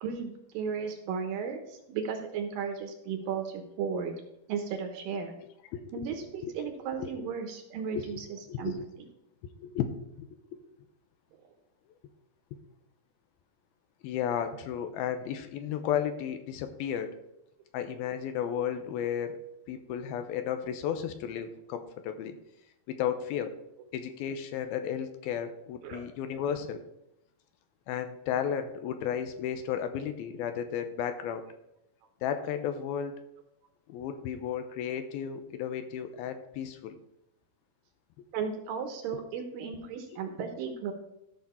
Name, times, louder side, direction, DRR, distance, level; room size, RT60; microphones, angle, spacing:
voice 1, 0.0-4.1 4.5-5.3 5.9-9.1 25.8-26.0 38.3-40.9, right 6 dB, 70° right, 5 dB, 2.6 m, -35 dB
voice 2, 8.5-8.9 9.6-9.9 10.2-10.3 14.0-17.2 17.7-19.4 19.7-22.4 22.9-23.6 23.9-26.8 27.9-31.4 32.2-33.1 33.9-37.0 39.1-39.2, left 9 dB, 80° left, 8 dB, 2.5 m, -33 dB
14.0 x 5.9 x 4.4 m, 0.82 s
omnidirectional pair, 4.5 m